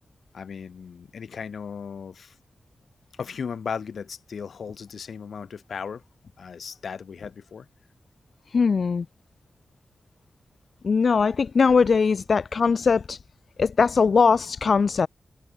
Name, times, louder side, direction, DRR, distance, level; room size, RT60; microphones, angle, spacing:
voice 1, 0.3-2.4 3.2-6.0 6.4-7.7, left 6 dB, 70° left, 3.9 m, -36 dB
voice 2, 8.5-9.1 10.8-13.2 13.6-15.1, left 5 dB, 50° left, 0.7 m, -20 dB
wide cardioid pair, 175°, 0 cm